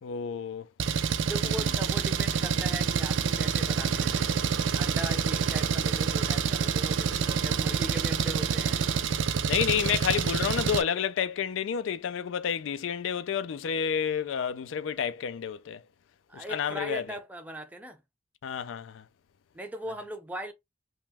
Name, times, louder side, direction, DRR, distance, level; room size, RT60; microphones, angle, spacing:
voice 1, 0.0-0.7 9.5-15.8 16.3-17.0 18.4-19.0, left 7 dB, 85° left, 0.4 m, -30 dB
Engine, 0.8-10.8, right 6 dB, 80° right, 0.4 m, -27 dB
voice 2, 1.2-4.4 4.8-8.9 16.3-18.0 19.5-20.5, right 1 dB, 10° right, 0.4 m, -39 dB
2.9 x 2.2 x 3.4 m
head